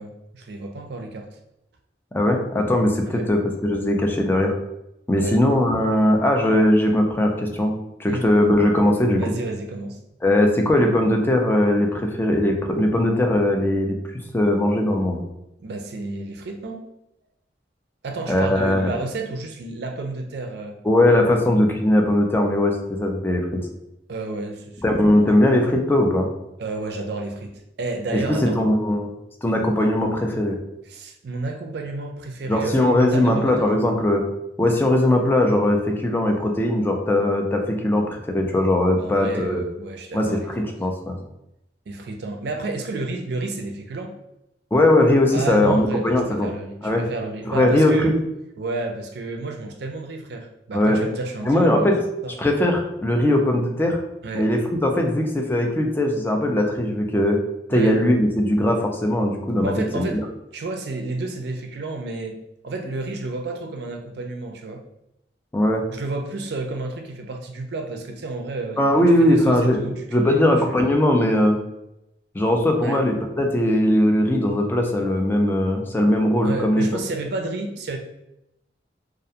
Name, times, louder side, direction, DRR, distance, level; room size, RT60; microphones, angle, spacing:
voice 1, 0.0-1.4 3.0-3.3 5.2-5.4 8.1-8.2 9.2-10.0 15.6-16.8 18.0-20.8 24.1-24.8 26.6-28.6 30.9-33.5 38.9-40.5 41.9-44.1 45.3-48.1 48.6-51.9 52.2-52.3 54.2-54.5 57.7-58.0 59.6-60.2 60.5-62.4 62.6-64.8 65.9-68.8 69.2-70.4 70.7-70.8 72.8-73.0 76.4-78.0, right 2 dB, 65° right, 3 dB, 0.4 m, -31 dB
voice 2, 2.1-4.5 5.1-9.2 10.2-14.0 14.3-15.2 18.3-18.9 20.8-23.5 24.8-26.3 28.1-29.1 29.4-30.6 32.5-34.2 34.6-39.6 40.1-41.2 44.7-46.5 46.8-47.0 47.5-48.1 50.7-51.0 51.4-52.0 52.4-54.0 54.3-57.4 57.7-60.2 65.5-65.8 68.8-69.8 70.1-71.6 72.3-77.0, left 1 dB, 10° left, 2 dB, 0.4 m, -20 dB
2.4 x 2.2 x 2.7 m, 0.86 s
head